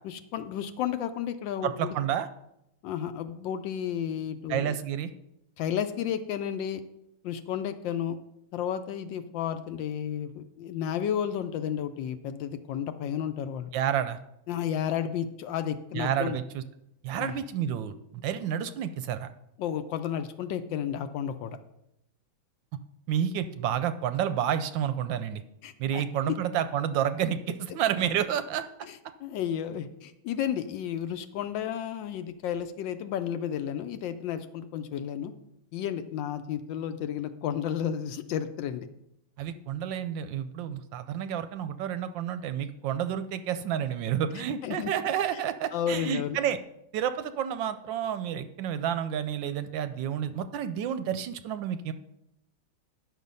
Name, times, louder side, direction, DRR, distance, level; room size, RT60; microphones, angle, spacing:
voice 1, 0.0-2.0 2.8-4.7 5.6-6.8 7.2-8.2 8.5-13.7 14.5-16.4 17.2-17.3 19.6-21.6 25.6-26.4 28.8-35.3 35.7-38.9 44.6-44.9 45.7-46.4, left 9 dB, 75° left, 10 dB, 1.2 m, -32 dB
voice 2, 1.6-2.3 4.5-5.1 13.7-14.2 15.9-16.6 17.0-19.3 23.1-25.4 25.8-28.6 39.4-46.6 46.9-51.9, right 9 dB, 75° right, 11 dB, 1.1 m, -30 dB
10.0 x 6.3 x 5.4 m, 0.84 s
omnidirectional pair, 2.3 m